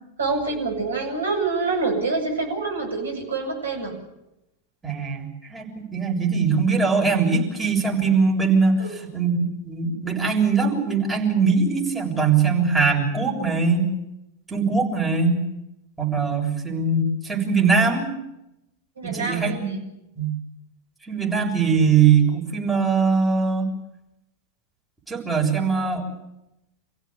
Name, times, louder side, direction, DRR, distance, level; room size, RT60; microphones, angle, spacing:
voice 1, 0.2-3.9 8.8-9.0 19.0-19.8, right 3 dB, 70° right, 3 dB, 7.8 m, -26 dB
voice 2, 4.8-8.8 9.1-9.4 9.7-13.9 14.5-15.4 16.0-18.1 19.0-19.6 20.2-20.3 21.1-23.7 25.1-26.0, right 5 dB, 10° right, 0 dB, 7.2 m, -21 dB
28.0 x 16.0 x 8.6 m, 0.87 s
figure-of-eight pair, 90°, 0 cm